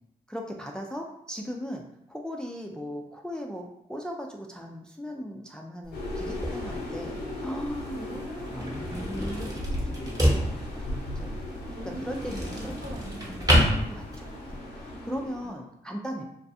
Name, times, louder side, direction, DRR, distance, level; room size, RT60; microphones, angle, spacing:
voice 1, 0.3-8.2 8.5-10.5 10.7-11.4 11.7-12.8 13.7-14.4 14.8-16.2, equal, 5° left, 1 dB, 0.4 m, -38 dB
sound 1, 5.8-14.6, equal, 20° right, 0.9 m, -29 dB
sound 2, 5.9-15.5, left 1 dB, 75° left, 0.7 m, -37 dB
voice 2, 7.9-8.7 11.7-13.7 15.4-15.6 16.1-16.3, right 1 dB, 60° right, -3 dB, 0.8 m, -43 dB
2.3 x 2.3 x 2.6 m, 0.77 s
supercardioid pair, 45°, 17 cm